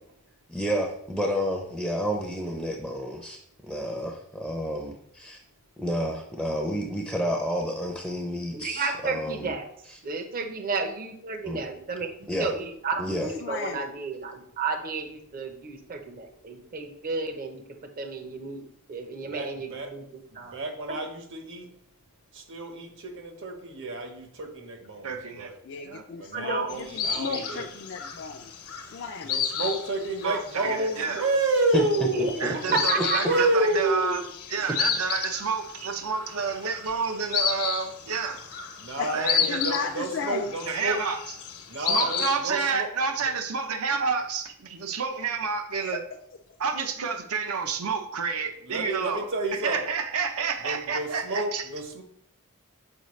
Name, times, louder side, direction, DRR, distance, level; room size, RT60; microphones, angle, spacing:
voice 1, 0.5-5.4 5.8-9.5 11.4-11.6 12.3-12.5 13.0-13.3 31.7-31.8 32.2-32.8, equal, ahead, 0 dB, 0.5 m, -30 dB
voice 2, 8.5-9.7 10.0-17.6 18.0-20.0 20.3-20.5 20.9-21.0 26.3-26.7 27.2-27.7 32.1-32.3 32.7-33.5, right 4 dB, 40° right, 5 dB, 0.7 m, -32 dB
voice 3, 13.4-13.9 25.6-28.5 28.9-29.4 39.0-39.1 39.5-40.5 45.8-46.0 46.7-46.9, left 5 dB, 55° left, 3 dB, 0.4 m, -34 dB
voice 4, 19.2-19.9 20.5-21.7 22.3-25.5 26.2-27.6 29.3-32.6 33.2-34.2 38.8-41.0 41.7-42.9 48.6-49.8 50.6-52.0, right 2 dB, 60° right, 4 dB, 1.1 m, -29 dB
voice 5, 25.0-25.5 25.8-26.0 30.2-31.2 32.4-34.2 34.5-38.4 39.1-39.6 40.7-41.2 41.8-46.0 46.6-49.3 49.6-51.6, right 5 dB, 80° right, 7 dB, 0.7 m, -29 dB
sound 1, 26.7-42.4, left 7 dB, 80° left, 1.0 m, -32 dB
6.7 x 4.7 x 3.2 m, 0.69 s
head